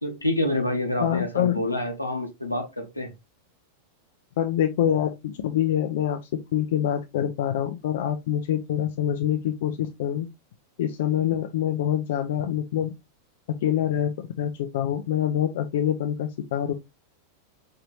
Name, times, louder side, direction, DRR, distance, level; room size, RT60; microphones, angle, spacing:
voice 1, 0.0-3.1, left 1 dB, 85° left, 1.1 m, -27 dB
voice 2, 1.0-1.7 4.4-6.2 6.5-10.3 10.8-12.9 13.6-16.7, left 10 dB, 55° left, 0.5 m, -25 dB
5.4 x 2.8 x 2.9 m
figure-of-eight pair, 90°, 0 cm